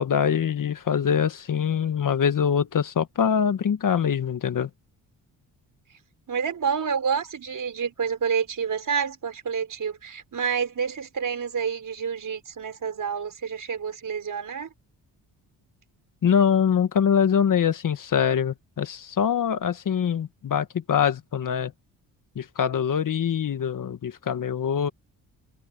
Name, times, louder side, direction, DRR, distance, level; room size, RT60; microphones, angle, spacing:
voice 1, 0.0-4.7 16.2-21.7 22.3-24.9, left 8 dB, 55° left, 1.6 m, -24 dB
voice 2, 6.3-14.7, right 6 dB, 50° right, 5.5 m, -28 dB
cardioid pair, 70°, 39 cm